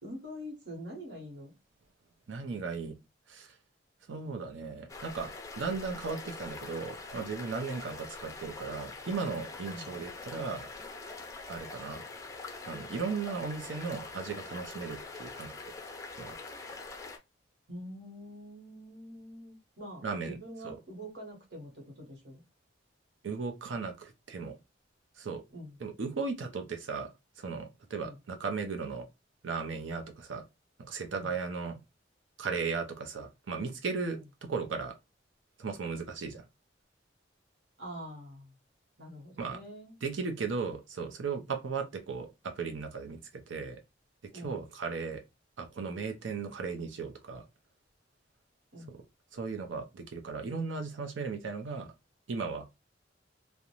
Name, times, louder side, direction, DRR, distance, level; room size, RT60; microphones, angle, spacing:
voice 1, 0.0-1.5 9.7-9.9 17.7-22.4 25.5-25.7 28.0-28.2 31.2-31.3 34.1-34.2 37.8-38.5 39.0-39.9 44.3-44.6 48.7-48.9, equal, 65° right, 1.1 m, -45 dB
voice 2, 2.3-3.0 3.3-3.6 4.1-10.7 11.5-12.0 12.6-15.6 16.2-16.4 20.0-20.4 20.6-20.7 23.2-24.6 25.2-25.4 25.8-29.1 29.4-30.4 30.8-31.8 32.4-35.0 35.6-36.5 39.4-39.6 40.0-43.8 44.3-45.2 45.6-47.5 48.9-49.0 49.3-51.9 52.3-52.8, right 4 dB, 90° right, 0.5 m, -36 dB
sound 1, 4.9-17.2, left 3 dB, 15° left, 0.4 m, -44 dB
2.5 x 2.1 x 2.8 m
head